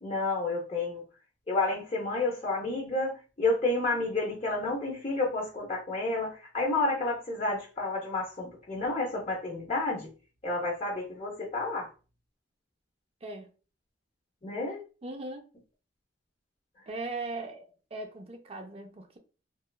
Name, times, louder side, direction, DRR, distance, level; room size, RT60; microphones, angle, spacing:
voice 1, 0.0-1.0 1.5-10.1 10.4-11.9 14.4-14.8, left 2 dB, 30° left, 0.6 m, -30 dB
voice 2, 15.0-15.5 16.9-19.2, right 2 dB, 30° right, 0.4 m, -39 dB
2.9 x 2.3 x 2.2 m
head